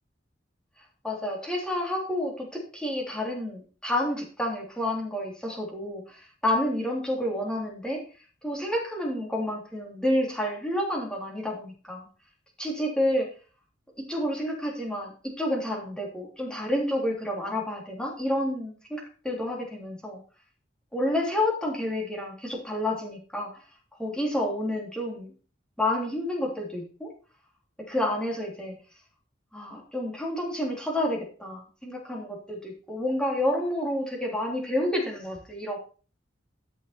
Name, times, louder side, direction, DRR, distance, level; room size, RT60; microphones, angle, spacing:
voice 1, 1.0-8.0 8.4-12.1 12.6-13.3 14.0-20.2 20.9-23.6 24.0-25.3 25.8-27.1 27.8-28.7 29.5-35.8, left 1 dB, 5° left, -2 dB, 3.3 m, -29 dB
13.0 x 6.2 x 4.3 m, 0.38 s
head